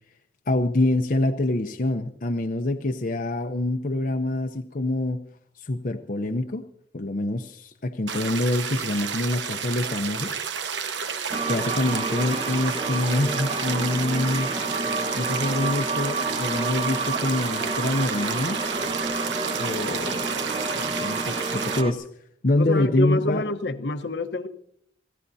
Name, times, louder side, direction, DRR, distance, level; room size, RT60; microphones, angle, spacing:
voice 1, 0.5-5.2 5.6-6.7 6.9-10.4 10.9-11.0 11.4-14.5 15.2-18.6 19.6-22.1 22.4-23.4, left 2 dB, 50° left, 0.7 m, -26 dB
sound 1, 8.1-21.8, right 6 dB, 90° right, 1.1 m, -31 dB
sound 2, 11.3-21.9, right 3 dB, 30° right, 1.1 m, -29 dB
voice 2, 22.6-24.5, left 2 dB, 75° left, 1.1 m, -27 dB
28.5 x 16.5 x 2.8 m
head